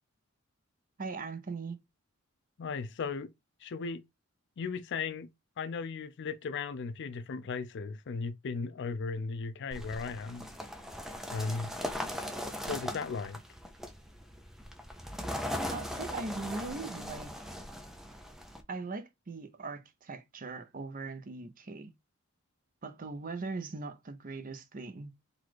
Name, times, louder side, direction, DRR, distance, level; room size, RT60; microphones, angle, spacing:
voice 1, 1.0-1.8 15.7-17.3 18.7-21.9 22.8-25.1, right 3 dB, 40° right, 0.7 m, -40 dB
voice 2, 2.6-3.3 3.6-4.0 4.6-5.3 5.6-10.5 11.3-11.7 12.7-13.4, left 4 dB, 60° left, 0.4 m, -36 dB
sound 1, 9.7-18.6, equal, ahead, 0.6 m, -39 dB
4.0 x 2.4 x 4.6 m
head